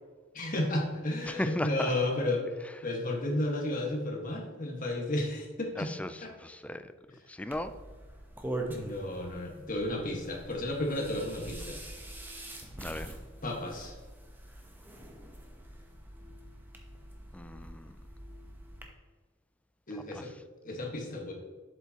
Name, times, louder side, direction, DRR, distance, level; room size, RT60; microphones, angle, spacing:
voice 1, 0.3-2.4 2.8-5.9 6.2-6.3 8.7-11.8 13.4-13.9 19.9-20.3 20.6-21.3, left 1 dB, 45° left, 0 dB, 1.6 m, -32 dB
voice 2, 1.3-1.9 5.8-6.1 6.4-6.9 7.3-7.7 12.8-13.1 17.3-17.9 20.1-20.2, left 1 dB, 5° left, 11 dB, 0.3 m, -35 dB
sound 1, 7.5-18.9, right 1 dB, 10° right, 0.9 m, -44 dB
7.9 x 7.2 x 2.9 m, 1.4 s
head